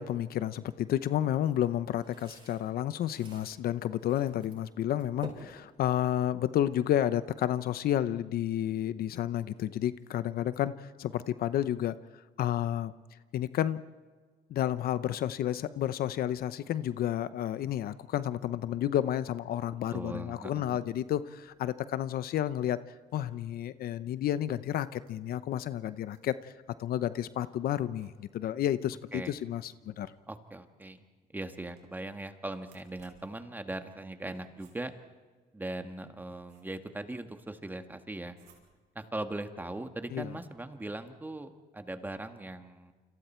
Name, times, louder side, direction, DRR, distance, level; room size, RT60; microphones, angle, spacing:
voice 1, 0.0-12.0 12.4-12.9 13.3-13.8 14.5-22.8 23.1-26.5 26.8-30.1 40.1-40.3, left 11 dB, 65° left, 14 dB, 0.8 m, -31 dB
sound 1, 1.4-3.5 4.0-4.6 4.9-6.4, right 3 dB, 30° right, 7.5 m, -50 dB
voice 2, 19.9-20.8 29.1-29.3 30.3-31.0 31.3-34.9 35.5-38.4 38.9-42.9, right 2 dB, 10° right, 7 dB, 1.7 m, -40 dB
sound 2, 21.2-21.9 22.9-23.7 25.0-26.5 27.7-28.6 29.8-30.6 31.6-32.1 32.6-33.4 34.3-35.1 35.9-37.0 38.3-39.0, right 6 dB, 80° right, 6.0 m, -66 dB
29.0 x 26.5 x 4.5 m, 1.4 s
cardioid pair, 110°, 17 cm